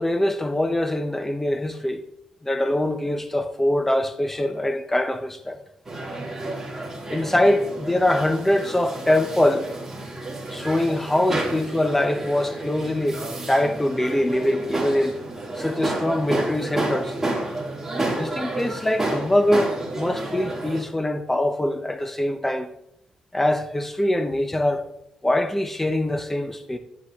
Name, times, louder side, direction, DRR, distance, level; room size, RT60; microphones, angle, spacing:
voice 1, 0.0-2.0 2.4-5.6 6.5-6.7 7.1-9.7 10.5-15.2 15.6-17.2 18.1-22.7 23.3-24.8 25.2-26.8, left 1 dB, 10° left, 0.6 m, -23 dB
sound 1, 5.8-20.8, right 2 dB, 15° right, 1.9 m, -30 dB
10.0 x 8.0 x 2.4 m
cardioid pair, 125°, 3 cm